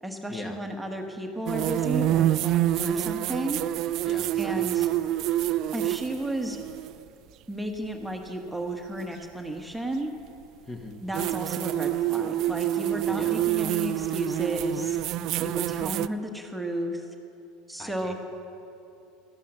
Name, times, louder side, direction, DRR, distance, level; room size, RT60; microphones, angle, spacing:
voice 1, 0.0-3.6 4.4-4.9 5.7-6.6 7.5-10.1 11.0-15.0 15.4-17.0 17.7-18.1, right 1 dB, 5° right, 3 dB, 1.4 m, -33 dB
sound 1, 1.5-7.0 9.0-9.1 11.1-16.1, right 13 dB, 50° right, 0.3 m, -27 dB
voice 2, 4.0-4.6 10.7-11.0 13.1-13.3 17.8-18.1, left 2 dB, 20° left, 5 dB, 1.4 m, -40 dB
13.5 x 11.5 x 6.5 m, 2.8 s
hypercardioid pair, 75°, 0 cm